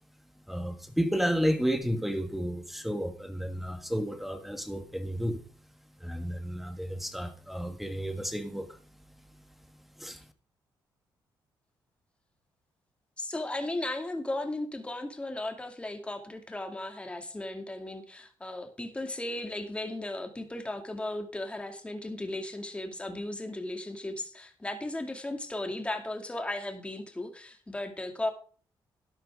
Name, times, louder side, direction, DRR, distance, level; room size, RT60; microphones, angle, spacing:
voice 1, 0.5-5.4 6.0-8.8 10.0-10.2, equal, ahead, 1.5 m, -31 dB
voice 2, 13.2-28.3, left 1 dB, 15° left, 2.3 m, -36 dB
12.5 x 10.5 x 3.7 m
cardioid pair, 100°, 8 cm